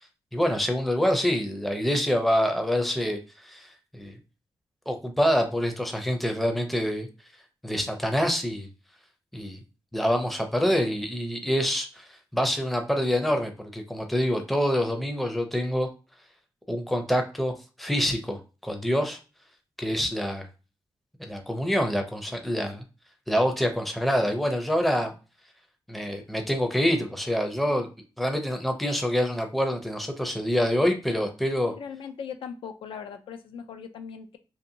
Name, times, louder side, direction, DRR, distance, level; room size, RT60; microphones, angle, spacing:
voice 1, 0.3-4.2 4.9-7.1 7.6-8.7 9.3-9.6 9.9-15.9 16.7-19.2 19.8-20.5 21.2-22.8 23.3-25.1 25.9-27.9 28.2-31.7, equal, ahead, 4 dB, 0.5 m, -26 dB
voice 2, 31.7-34.4, left 7 dB, 90° left, 7 dB, 0.4 m, -39 dB
2.7 x 2.6 x 2.6 m, 0.32 s
wide cardioid pair, 145°, 9 cm